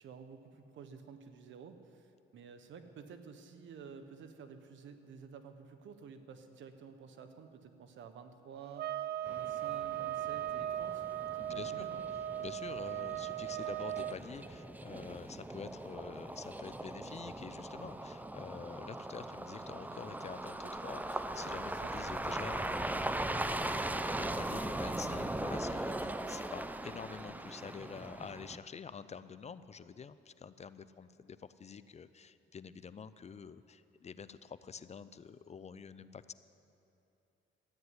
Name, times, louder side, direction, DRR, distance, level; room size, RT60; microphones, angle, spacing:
voice 1, 0.0-11.1 11.4-12.0 21.7-21.9 23.7-24.1, right 6 dB, 70° right, 8 dB, 1.2 m, -51 dB
sound 1, 8.8-14.2, right 12 dB, 55° right, 0.5 m, -38 dB
sound 2, 9.3-28.6, right 1 dB, 10° right, 0.6 m, -40 dB
voice 2, 11.4-11.9 12.1-23.8 24.2-36.3, left 6 dB, 35° left, 14 dB, 0.5 m, -47 dB
13.0 x 9.6 x 9.5 m, 2.7 s
cardioid pair, 90°, 20 cm